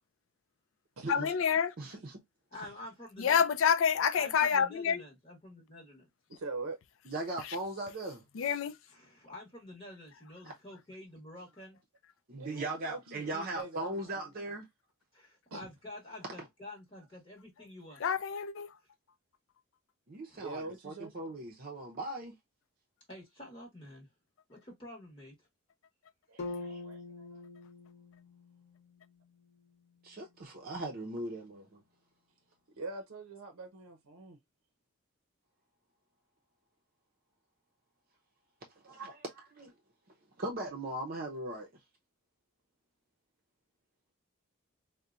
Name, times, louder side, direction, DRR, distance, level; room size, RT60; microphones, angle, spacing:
voice 1, 1.1-1.7 3.2-5.0 8.3-8.7 18.0-18.7, left 7 dB, 65° left, 0.4 m, -28 dB
voice 2, 1.8-2.2 7.1-8.2 10.4-10.5 12.3-14.7 20.1-22.3 26.3-26.8 30.0-31.8 38.8-39.7 40.4-41.7, right 2 dB, 45° right, 0.6 m, -39 dB
voice 3, 2.5-3.4 4.2-6.1 8.9-11.8 15.1-18.0 20.3-20.4 23.1-24.1 24.5-25.3, left 1 dB, 25° left, 1.0 m, -48 dB
voice 4, 6.3-6.8 12.4-14.3 15.5-15.7 20.4-21.1 26.3-27.4 32.8-34.4 38.8-39.1, right 3 dB, 85° right, 0.6 m, -44 dB
sound 1, 26.4-30.5, left 3 dB, 50° left, 0.9 m, -45 dB
4.1 x 2.1 x 2.4 m
head